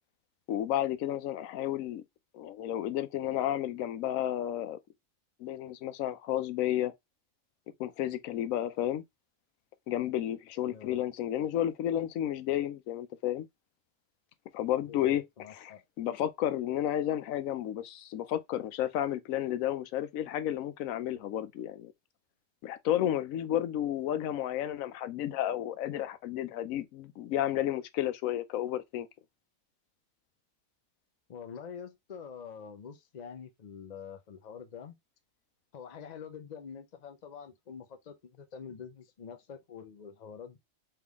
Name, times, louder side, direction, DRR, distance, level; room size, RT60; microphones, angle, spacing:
voice 1, 0.5-2.0 2.3-4.8 5.4-6.9 7.8-9.0 9.9-13.5 14.5-15.2 15.6-21.9 22.6-29.1, left 12 dB, 90° left, 1.0 m, -32 dB
voice 2, 10.6-11.0 14.9-15.8 31.3-35.0 35.7-40.6, left 7 dB, 55° left, 0.5 m, -46 dB
3.6 x 3.3 x 3.4 m
omnidirectional pair, 1.4 m